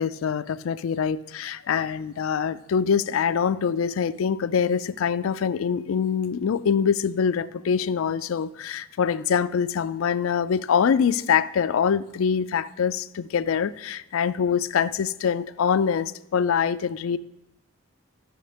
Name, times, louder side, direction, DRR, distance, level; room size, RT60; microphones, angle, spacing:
voice 1, 0.0-17.2, left 7 dB, 80° left, 0.4 m, -24 dB
14.5 x 6.2 x 3.3 m
head